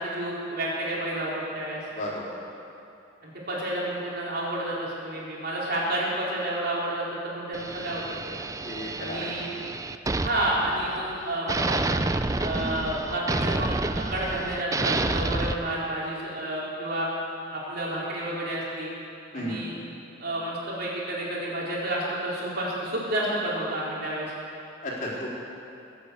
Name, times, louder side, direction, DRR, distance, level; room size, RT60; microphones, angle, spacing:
voice 1, 0.0-1.8 3.2-8.3 9.0-9.5 10.2-12.0 12.4-17.1 17.5-18.9 19.3-19.7 20.2-24.3, right 1 dB, 55° right, -6 dB, 4.4 m, -30 dB
sound 1, 7.5-11.2 11.5-15.5, right 2 dB, 15° right, 0.4 m, -29 dB
voice 2, 8.6-9.3 12.5-12.8 19.3-19.6 24.8-25.4, equal, 45° left, -5 dB, 3.9 m, -33 dB
21.5 x 8.1 x 8.2 m, 2.6 s
head